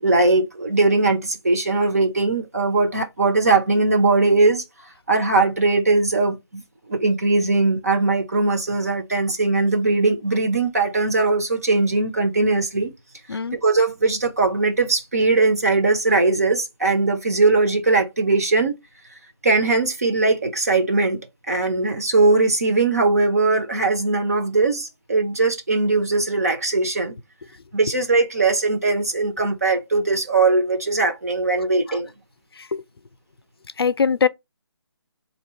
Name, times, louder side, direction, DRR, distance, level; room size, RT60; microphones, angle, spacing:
voice 1, 0.0-4.6 5.1-6.4 6.9-12.9 13.5-18.8 19.4-21.2 21.5-27.1 27.7-32.1, right 3 dB, 35° right, 0.7 m, -20 dB
voice 2, 33.8-34.3, left 5 dB, 60° left, 0.5 m, -20 dB
3.8 x 2.9 x 4.2 m
hypercardioid pair, 175°, 14 cm